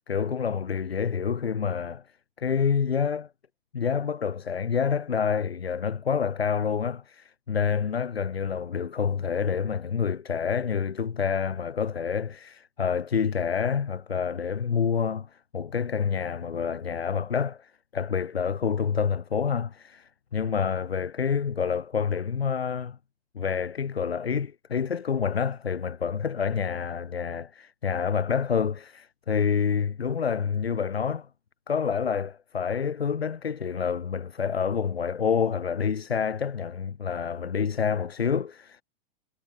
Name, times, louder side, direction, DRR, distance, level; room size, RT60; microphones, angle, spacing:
voice 1, 0.1-2.0 2.4-3.3 3.7-23.0 23.3-31.3 31.7-38.8, left 6 dB, 80° left, 2.8 m, -28 dB
figure-of-eight pair, 100°, 30 cm